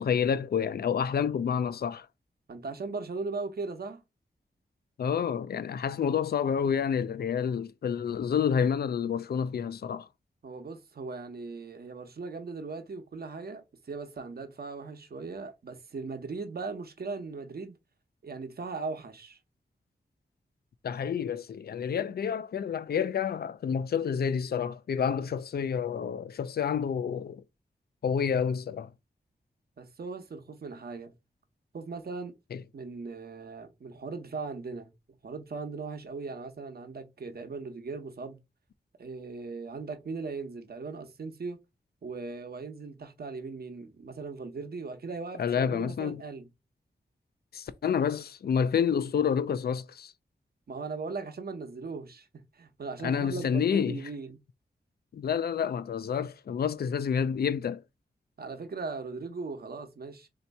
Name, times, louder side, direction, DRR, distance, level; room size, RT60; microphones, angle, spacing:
voice 1, 0.0-2.1 5.0-10.1 20.8-27.4 28.0-28.9 32.5-32.6 45.4-46.2 47.5-50.1 53.0-54.0 55.1-57.8, left 7 dB, 65° left, 0.4 m, -29 dB
voice 2, 2.5-4.0 10.4-17.8 18.2-19.4 29.8-31.1 31.7-32.3 32.7-34.9 35.2-38.4 39.0-41.6 42.0-46.5 50.7-52.3 52.5-54.4 58.4-60.3, right 4 dB, 60° right, 1.0 m, -38 dB
3.3 x 2.9 x 4.1 m
cardioid pair, 55°, 18 cm